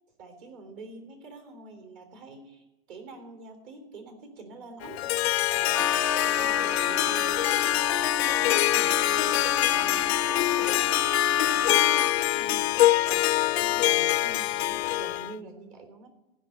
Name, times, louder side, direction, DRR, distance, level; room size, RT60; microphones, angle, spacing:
voice 1, 0.2-5.0 5.5-7.9 8.2-12.8 13.0-16.1, right 3 dB, 50° right, 5 dB, 3.7 m, -46 dB
Harp, 4.8-15.3, left 15 dB, 90° left, 0.5 m, -24 dB
Wind instrument woodwind instrument, 5.7-12.2, left 5 dB, ahead, 0.4 m, -32 dB
15.5 x 6.3 x 9.2 m, 0.96 s
supercardioid pair, 145°, 30 cm